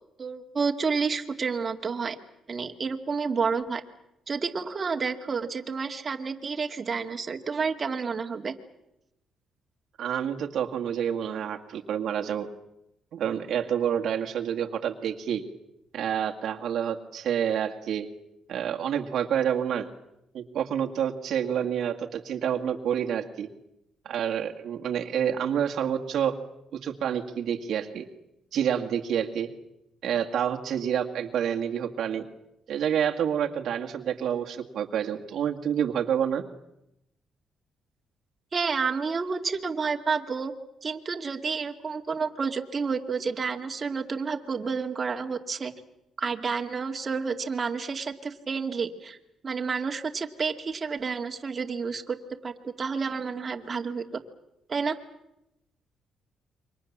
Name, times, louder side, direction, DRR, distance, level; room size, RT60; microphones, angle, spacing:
voice 1, 0.2-2.2 2.5-3.8 4.3-8.5 38.5-40.5 40.8-45.7 46.2-49.2 49.4-52.2 52.4-54.2 54.7-55.0, right 5 dB, 40° right, 4 dB, 2.3 m, -30 dB
voice 2, 10.0-12.5 13.1-15.4 15.9-18.1 18.5-19.9 20.3-23.5 24.1-26.4 26.8-28.0 28.5-29.5 30.0-32.2 32.7-36.4, right 9 dB, 70° right, 3 dB, 2.1 m, -28 dB
28.5 x 24.5 x 7.4 m, 0.87 s
cardioid pair, 90°, 0 cm